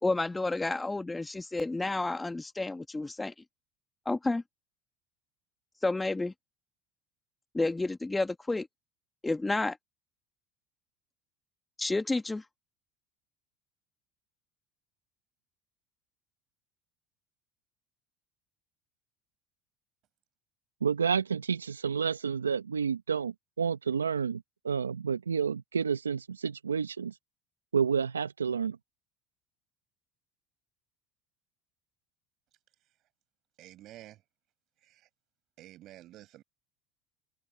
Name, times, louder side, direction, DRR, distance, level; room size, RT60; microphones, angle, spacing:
voice 1, 0.0-3.3 4.0-4.4 5.8-6.3 7.5-8.7 9.2-9.8 11.8-12.4, left 2 dB, 15° left, 1.5 m, -30 dB
voice 2, 20.8-27.1 27.7-28.8, right 6 dB, 90° right, 1.2 m, -30 dB
voice 3, 33.6-34.2 34.8-35.1 35.6-36.4, right 15 dB, 55° right, 7.5 m, -51 dB
open air
hypercardioid pair, 70°, 0 cm